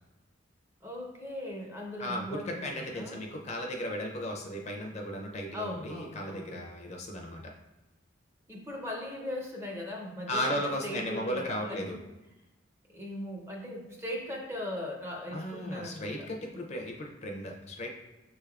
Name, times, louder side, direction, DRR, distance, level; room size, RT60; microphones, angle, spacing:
voice 1, 0.8-3.2 5.5-6.6 8.5-12.0 12.9-16.3 16.5-16.6, left 1 dB, 15° right, -1 dB, 0.6 m, -39 dB
voice 2, 2.0-7.5 10.3-12.0 15.3-17.9, equal, 35° left, 1 dB, 0.5 m, -35 dB
6.1 x 3.3 x 2.4 m, 1.0 s
head